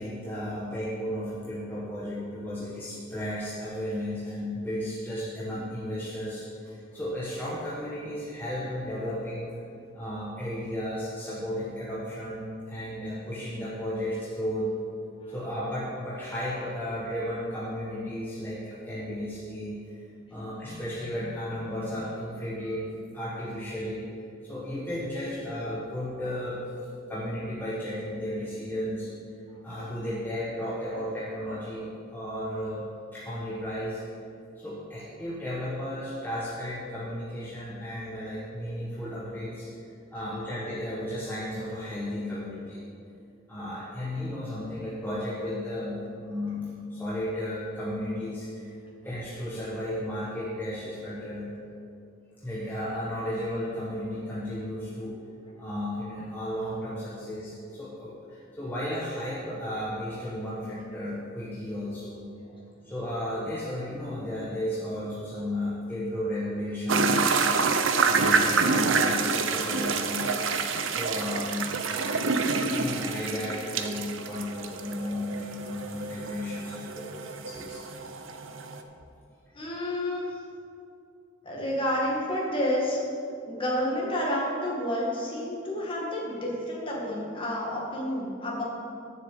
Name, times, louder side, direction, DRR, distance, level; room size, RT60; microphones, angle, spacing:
voice 1, 0.0-9.5 9.9-14.7 15.3-20.0 20.3-24.1 24.4-26.6 27.1-29.1 29.6-32.9 33.1-34.0 34.6-42.8 43.5-48.7 49.0-51.5 52.4-55.2 55.6-62.3 62.8-70.4 70.9-77.9, left 1 dB, 10° left, -8 dB, 1.2 m, -34 dB
sound 1, 66.9-78.8, right 4 dB, 75° right, 0.7 m, -27 dB
voice 2, 79.5-80.4 81.4-83.0 83.5-88.6, left 1 dB, 25° left, -4 dB, 2.0 m, -30 dB
7.6 x 6.5 x 8.1 m, 2.5 s
head